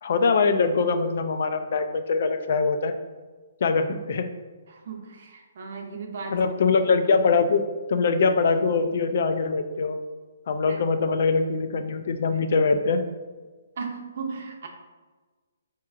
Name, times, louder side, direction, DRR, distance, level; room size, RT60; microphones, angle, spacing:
voice 1, 0.0-2.9 3.6-4.3 6.3-7.6 7.9-10.0 10.5-13.0, left 4 dB, 50° left, 8 dB, 0.3 m, -23 dB
voice 2, 4.7-6.4 10.7-10.8 13.8-14.7, right 5 dB, 55° right, 3 dB, 0.6 m, -36 dB
4.4 x 2.9 x 2.4 m, 1.3 s
hypercardioid pair, 165°, 0 cm